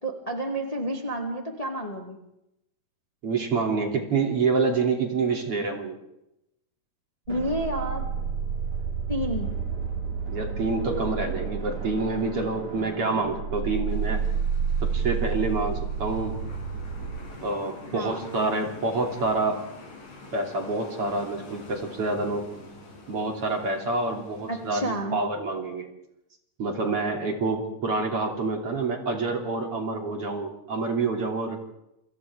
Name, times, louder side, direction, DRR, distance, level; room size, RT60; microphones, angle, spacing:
voice 1, 0.0-2.2 7.3-8.0 9.1-9.5 17.9-18.2 24.5-25.2, right 1 dB, 10° left, 1 dB, 2.1 m, -30 dB
voice 2, 3.2-6.0 10.3-14.2 14.8-16.4 17.4-19.6 20.3-22.5 23.1-25.9 26.6-31.6, right 3 dB, 45° right, 2 dB, 3.7 m, -27 dB
Drum, 7.3-15.6, right 3 dB, 25° right, 3.0 m, -43 dB
sound 1, 7.3-12.8 13.2-17.2, right 6 dB, 70° right, 3.0 m, -30 dB
sound 2, 13.9-25.0, left 2 dB, 65° left, 6.9 m, -46 dB
29.0 x 26.5 x 3.6 m, 0.84 s
omnidirectional pair, 3.8 m